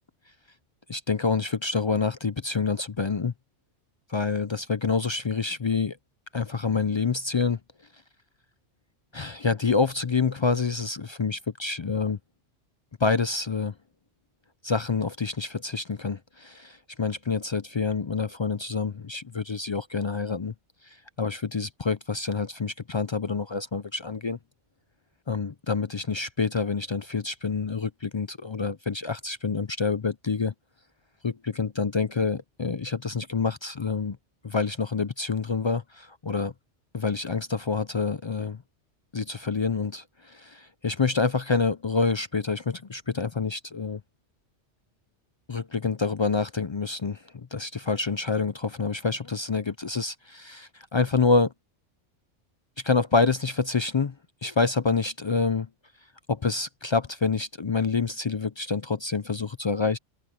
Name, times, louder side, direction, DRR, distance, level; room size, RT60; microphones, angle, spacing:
voice 1, 0.9-3.3 4.1-6.0 6.3-7.6 9.1-12.2 13.0-13.7 14.6-20.5 20.8-24.4 25.3-30.5 31.2-34.2 34.4-36.5 36.9-38.6 39.1-44.0 45.5-51.5 52.8-54.1 54.4-55.7 56.3-60.0, left 4 dB, 45° left, 0.3 m, -27 dB
omnidirectional pair, 1.2 m